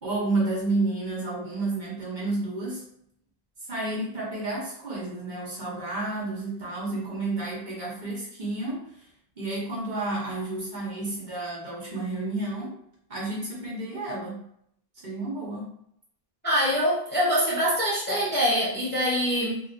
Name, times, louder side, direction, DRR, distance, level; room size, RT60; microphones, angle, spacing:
voice 1, 0.0-2.8 3.7-8.9 9.4-12.8 13.1-14.4 15.0-15.7, right 2 dB, 50° right, -6 dB, 1.0 m, -31 dB
voice 2, 16.4-19.6, equal, 15° left, -7 dB, 0.5 m, -24 dB
2.8 x 2.2 x 2.5 m, 0.71 s
omnidirectional pair, 1.0 m